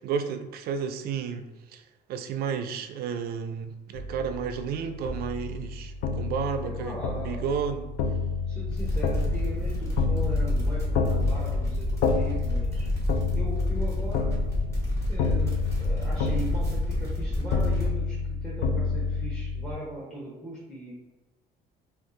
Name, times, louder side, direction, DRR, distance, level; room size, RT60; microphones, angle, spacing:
voice 1, 0.0-1.8 2.1-7.9, right 6 dB, 65° right, 8 dB, 0.4 m, -32 dB
sound 1, 4.0-19.7, left 4 dB, 70° left, 0.4 m, -30 dB
voice 2, 6.6-7.5 8.5-12.9 13.3-14.4 15.1-20.9, right 1 dB, 5° left, -7 dB, 0.8 m, -39 dB
sound 2, 8.7-17.9, left 1 dB, 20° left, 1.4 m, -29 dB
2.6 x 2.4 x 3.7 m, 1.1 s
cardioid pair, 110°, 17 cm